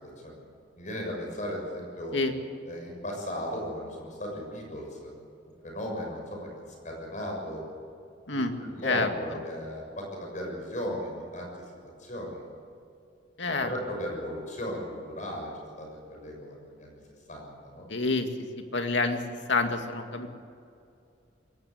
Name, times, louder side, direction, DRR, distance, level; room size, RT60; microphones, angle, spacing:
voice 1, 0.0-0.4 0.8-2.2 2.7-5.1 5.6-6.5 6.8-7.6 8.3-11.5 12.0-12.4 13.4-17.0 17.3-17.8, equal, 40° left, 0 dB, 6.6 m, -36 dB
voice 2, 8.3-8.6 8.8-9.1 13.4-13.7 17.9-18.3 18.6-20.3, left 3 dB, 75° left, 5 dB, 2.3 m, -28 dB
22.5 x 18.5 x 8.5 m, 2.5 s
head